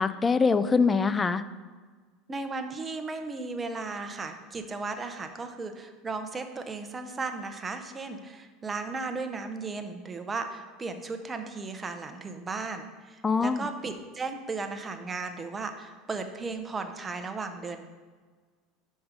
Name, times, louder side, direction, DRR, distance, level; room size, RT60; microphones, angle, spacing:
voice 1, 0.0-1.4 13.2-13.7, left 5 dB, 20° left, 13 dB, 0.4 m, -24 dB
voice 2, 2.3-17.8, right 3 dB, 20° right, 7 dB, 0.7 m, -35 dB
6.0 x 5.4 x 5.0 m, 1.5 s
supercardioid pair, 115°, 0 cm